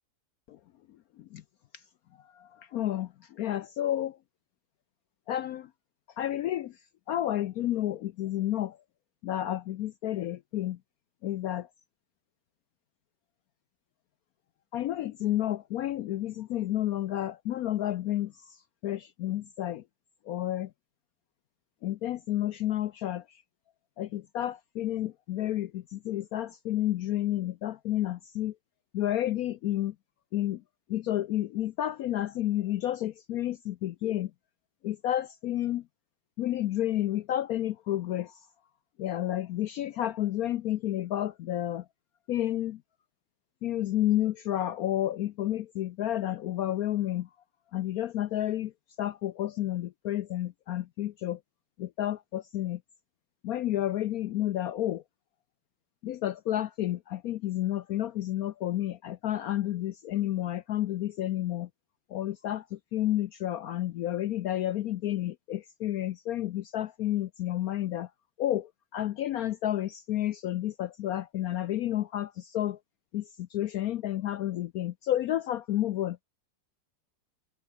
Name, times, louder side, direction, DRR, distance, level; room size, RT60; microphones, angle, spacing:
voice 1, 2.3-3.1 3.4-4.2 5.3-5.7 6.2-6.7 7.1-8.8 9.2-10.8 11.2-11.7 14.7-18.6 18.8-19.8 20.3-20.7 21.8-23.2 24.0-28.5 28.9-29.9 30.3-30.6 30.9-34.3 34.8-35.8 36.4-38.3 39.0-41.8 42.3-42.8 43.6-47.3 47.7-48.7 49.0-51.4 51.8-52.8 53.4-55.0 56.0-61.7 62.1-68.1 68.4-72.8 73.1-76.2, left 13 dB, 75° left, 0.8 m, -31 dB
omnidirectional pair, 2.0 m